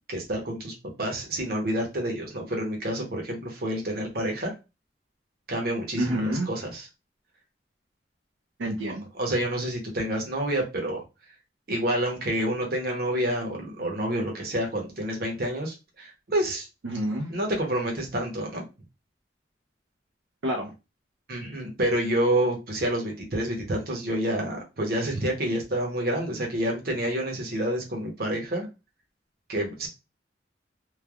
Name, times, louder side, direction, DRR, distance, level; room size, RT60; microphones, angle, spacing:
voice 1, 0.1-4.5 5.5-6.9 9.2-11.0 11.7-16.7 17.3-18.6 21.3-28.7 29.5-29.9, right 1 dB, 55° right, 0.9 m, -28 dB
voice 2, 6.0-6.5 8.6-9.1 16.8-17.3 20.4-20.7, right 1 dB, 85° right, 0.5 m, -28 dB
3.2 x 2.2 x 2.2 m
head